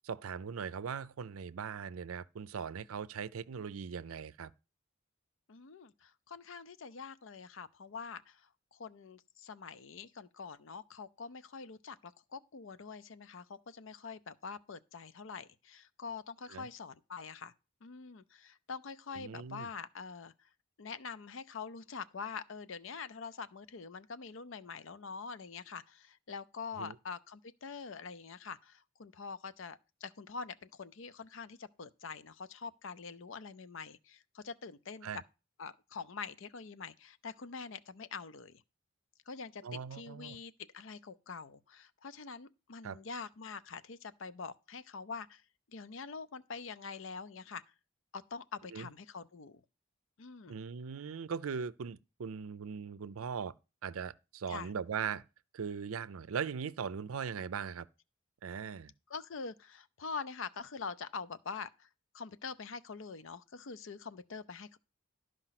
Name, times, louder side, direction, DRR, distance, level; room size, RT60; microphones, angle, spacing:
voice 1, 0.0-4.5 16.5-16.7 19.1-19.7 26.8-27.0 35.0-35.2 39.6-40.4 42.8-43.0 48.7-48.9 50.5-53.5 53.8-55.2 55.5-57.9 58.4-58.9, right 6 dB, 90° right, 0.5 m, -40 dB
voice 2, 5.5-8.4 8.7-17.5 17.8-20.3 20.8-35.2 35.6-38.6 39.3-39.6 39.9-45.4 45.7-47.6 48.1-49.6 50.2-50.6 54.5-54.7 59.1-61.9 62.1-64.8, left 5 dB, 70° left, 0.6 m, -45 dB
12.0 x 5.1 x 5.8 m
head